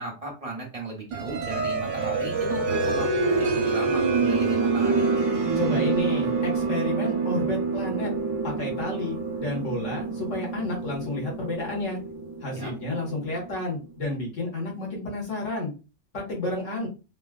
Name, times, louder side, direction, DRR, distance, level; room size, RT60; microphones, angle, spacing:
voice 1, 0.0-5.1 12.5-12.7, right 2 dB, 30° right, -1 dB, 1.1 m, -36 dB
sound 1, 1.1-13.6, right 4 dB, 80° right, 1.1 m, -27 dB
voice 2, 5.5-8.1 8.4-12.0 12.4-15.7 16.1-16.9, left 2 dB, 90° left, -2 dB, 1.7 m, -31 dB
4.0 x 2.3 x 2.2 m, 0.30 s
omnidirectional pair, 1.2 m